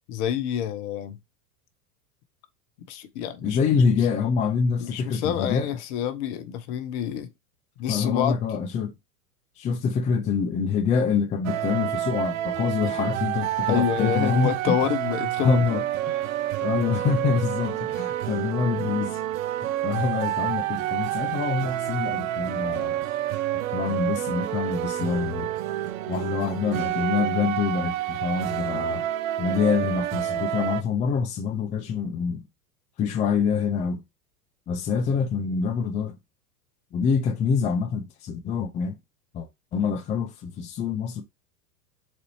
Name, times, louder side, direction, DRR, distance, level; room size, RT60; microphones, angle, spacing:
voice 1, 0.1-1.2 2.9-3.7 4.8-7.3 7.8-8.3 13.7-15.8, left 10 dB, 50° left, 0.7 m, -28 dB
voice 2, 3.4-5.7 7.9-8.9 9.6-14.7 15.4-15.8 16.6-19.2 19.8-23.0 23.7-25.5 26.1-29.0 29.4-32.4 33.0-34.0 34.7-36.2 36.9-39.0 39.3-41.2, left 6 dB, 15° left, 0.4 m, -26 dB
sound 1, 11.4-30.8, right 13 dB, 65° right, 0.5 m, -28 dB
4.1 x 2.6 x 3.0 m
hypercardioid pair, 95°, 45 cm